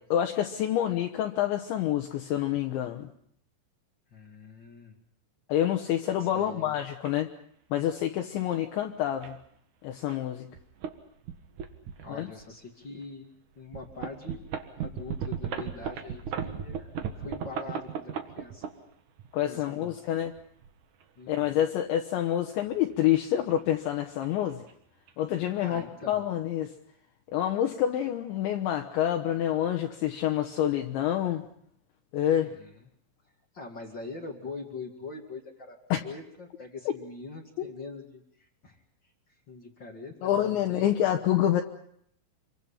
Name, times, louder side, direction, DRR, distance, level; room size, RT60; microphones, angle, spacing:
voice 1, 0.1-3.1 5.5-7.3 7.7-9.4 9.8-10.5 12.1-12.3 19.3-20.3 21.3-24.6 25.2-26.7 27.3-31.5 32.1-32.5 35.9-36.0 40.2-41.6, left 11 dB, 70° left, 4 dB, 3.1 m, -27 dB
voice 2, 4.1-5.0 6.2-6.7 12.0-14.5 14.8-18.6 19.5-20.0 21.2-21.6 25.6-26.2 32.3-32.9 33.5-35.8 36.0-38.8 39.5-41.0, left 3 dB, 55° left, 2 dB, 1.2 m, -43 dB
sound 1, 7.0-7.1 8.0-8.2 8.8-8.9 9.2-9.4 10.1-10.2 10.5-10.9 11.2-12.5 13.0-13.1 13.7-19.3 20.1-21.0 22.7-23.9 24.2-24.4 24.7-24.8 25.1-25.5, right 7 dB, 65° right, 2.0 m, -36 dB
28.0 x 24.5 x 5.7 m, 0.69 s
omnidirectional pair, 6.0 m